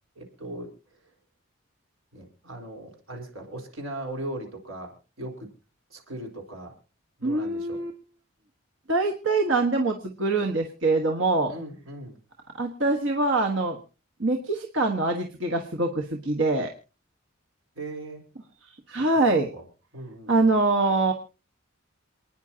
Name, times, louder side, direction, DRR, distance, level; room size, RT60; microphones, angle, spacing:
voice 1, 0.2-0.7 2.1-5.5 5.9-6.8 7.2-7.8 11.5-12.2 17.8-18.2 18.9-19.2 19.5-19.7 19.9-20.5, right 1 dB, 85° right, 2 dB, 4.1 m, -38 dB
voice 2, 7.2-7.9 8.9-11.5 12.5-13.8 14.2-16.7 18.9-19.5 20.3-21.1, right 2 dB, 65° right, 2 dB, 1.5 m, -24 dB
28.5 x 10.0 x 2.8 m, 0.34 s
head